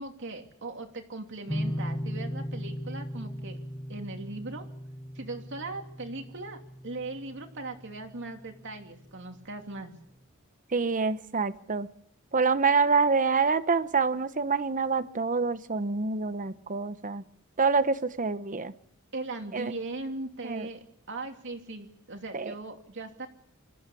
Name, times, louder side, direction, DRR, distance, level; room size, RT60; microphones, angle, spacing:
voice 1, 0.0-3.6 3.9-4.7 5.2-9.9 19.1-23.3, right 2 dB, 55° right, 4 dB, 2.8 m, -39 dB
sound 1, 1.5-8.7, equal, 15° left, 5.4 m, -37 dB
voice 2, 10.7-11.9 12.3-17.2 17.6-18.7 19.5-19.7 20.4-20.7 22.3-22.5, right 4 dB, 35° right, 12 dB, 1.0 m, -26 dB
26.5 x 14.5 x 8.4 m, 0.68 s
head